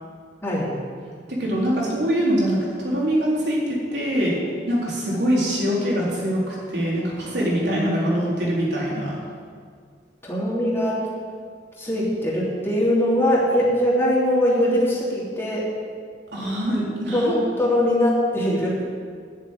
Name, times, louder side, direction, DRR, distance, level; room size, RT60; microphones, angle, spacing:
voice 1, 0.4-0.7 10.2-11.0 11.8-15.6 17.1-18.8, left 1 dB, 15° left, -6 dB, 3.2 m, -21 dB
voice 2, 1.3-2.6 2.8-4.3 4.7-9.2 16.3-17.3, equal, 70° right, -5 dB, 4.0 m, -23 dB
10.5 x 7.3 x 9.0 m, 2.1 s
head